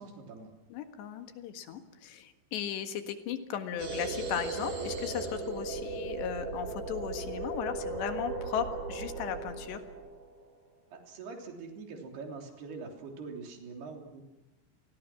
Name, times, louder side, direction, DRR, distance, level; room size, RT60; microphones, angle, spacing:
voice 1, 0.0-0.5 10.9-14.2, right 4 dB, 65° right, 2 dB, 5.3 m, -44 dB
voice 2, 0.7-9.8, left 9 dB, 75° left, 7 dB, 3.9 m, -36 dB
sound 1, 3.8-10.4, right 3 dB, 50° right, 6.1 m, -37 dB
30.0 x 22.5 x 6.1 m, 0.97 s
omnidirectional pair, 5.1 m